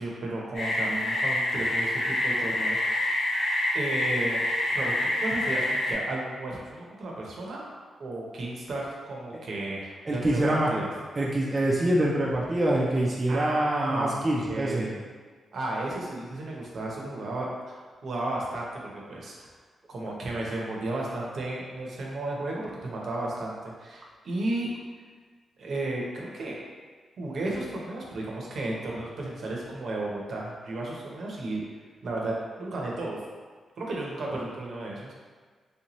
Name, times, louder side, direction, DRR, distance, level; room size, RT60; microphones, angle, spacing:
voice 1, 0.0-3.1 3.7-4.4 4.7-7.6 8.0-10.4 10.7-10.9 13.3-15.0 15.5-19.4 19.9-24.7 25.6-26.6 27.2-31.6 32.0-33.2 33.8-35.1, right 2 dB, 65° right, -3 dB, 0.7 m, -33 dB
sound 1, 0.5-5.9, left 1 dB, 75° left, 1.3 m, -27 dB
voice 2, 10.1-10.7 11.2-14.9, right 1 dB, 30° right, -4 dB, 0.4 m, -25 dB
3.3 x 2.8 x 3.0 m, 1.5 s
cardioid pair, 110°, 0 cm